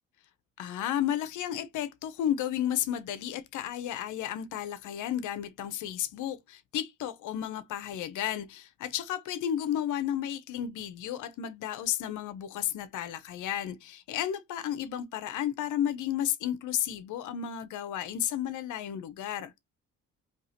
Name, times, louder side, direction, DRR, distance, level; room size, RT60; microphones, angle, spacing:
voice 1, 0.6-19.5, left 10 dB, 80° left, 0.7 m, -33 dB
4.7 x 2.8 x 2.8 m
cardioid pair, 90°, 30 cm